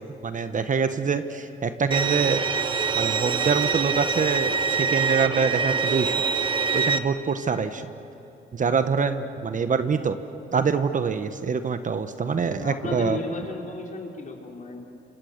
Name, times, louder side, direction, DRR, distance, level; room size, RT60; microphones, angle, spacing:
voice 1, 0.2-2.4 2.9-6.2 6.7-7.9 8.5-10.2 10.5-13.2, right 5 dB, 40° right, 9 dB, 1.2 m, -25 dB
Bowed string instrument, 1.9-7.0, right 5 dB, 25° right, 1.3 m, -24 dB
voice 2, 12.6-14.8, left 3 dB, 40° left, 0 dB, 4.2 m, -34 dB
29.5 x 26.0 x 6.7 m, 2.9 s
cardioid pair, 90°, 20 cm